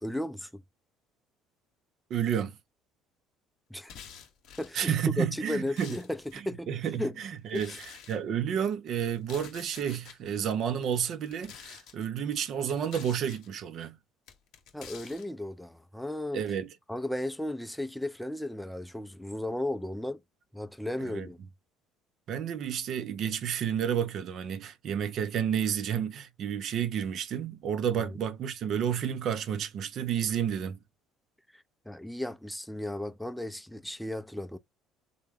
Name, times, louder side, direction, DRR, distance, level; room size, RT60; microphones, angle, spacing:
voice 1, 0.0-0.6 3.7-3.9 4.6-6.7 7.0-7.1 7.5-7.8 14.7-16.4 16.9-20.2 20.5-21.4 31.5-34.6, left 1 dB, 5° left, 0.5 m, -35 dB
voice 2, 2.1-2.6 4.7-6.0 6.3-14.0 16.3-16.7 21.0-21.3 22.3-30.8, right 8 dB, 55° right, 0.5 m, -31 dB
sound 1, 3.8-4.8 5.4-6.4 7.5-8.2 9.1-10.2 11.2-12.0 12.7-13.5 14.3-15.3, left 8 dB, 65° left, 0.9 m, -49 dB
3.4 x 2.2 x 3.4 m
hypercardioid pair, 70°, 0 cm